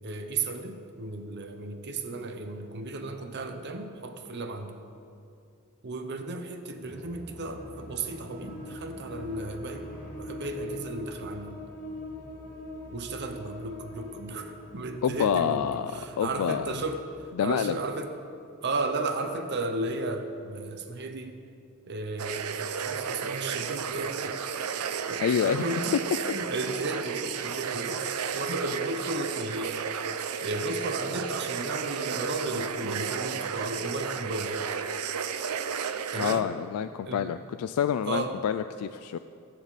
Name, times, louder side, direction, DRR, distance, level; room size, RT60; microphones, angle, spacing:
voice 1, 0.0-4.8 5.8-9.9 10.2-11.6 12.9-17.1 17.4-18.1 18.5-21.4 21.9-29.8 30.4-34.6 36.1-36.5 37.0-37.3 38.1-38.4, right 2 dB, 50° right, 6 dB, 0.8 m, -34 dB
sound 1, 6.8-17.1, left 1 dB, 35° left, 3.0 m, -43 dB
voice 2, 15.0-16.7 17.4-17.8 25.2-25.6 36.2-39.2, left 8 dB, 80° left, 11 dB, 0.3 m, -27 dB
sound 2, 22.2-36.4, right 7 dB, 90° right, 0.6 m, -33 dB
15.0 x 10.0 x 4.1 m, 2.4 s
head